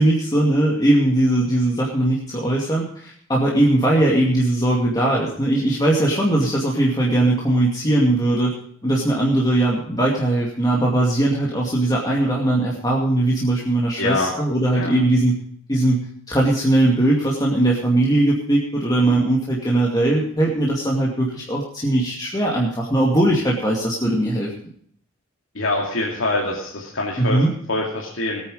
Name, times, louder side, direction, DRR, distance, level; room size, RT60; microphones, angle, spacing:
voice 1, 0.0-8.5 8.8-15.4 15.7-24.5 27.2-27.5, right 1 dB, 20° left, -3 dB, 2.4 m, -19 dB
voice 2, 14.0-14.3 14.7-14.9 25.5-27.4 27.7-28.4, left 2 dB, 70° left, -2 dB, 2.6 m, -24 dB
20.0 x 9.1 x 5.0 m, 0.63 s
head